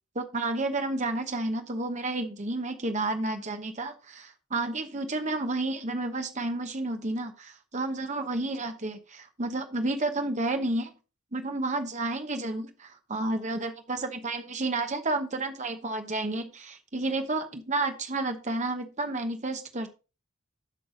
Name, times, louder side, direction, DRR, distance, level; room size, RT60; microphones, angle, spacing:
voice 1, 0.1-10.9 11.3-19.9, right 2 dB, 35° right, 6 dB, 1.1 m, -31 dB
8.5 x 5.5 x 5.2 m, 0.31 s
head